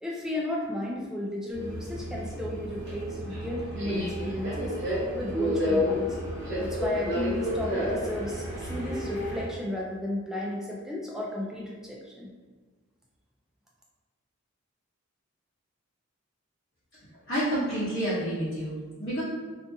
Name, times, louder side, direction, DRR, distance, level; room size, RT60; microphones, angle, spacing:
voice 1, 0.0-4.7 5.2-6.2 6.6-12.3, left 1 dB, ahead, -3 dB, 0.3 m, -34 dB
Subway metro underground, 1.5-9.5, left 1 dB, 50° right, 0.9 m, -31 dB
voice 2, 17.3-19.2, right 1 dB, 45° left, -13 dB, 0.8 m, -29 dB
2.5 x 2.4 x 2.6 m, 1.4 s
head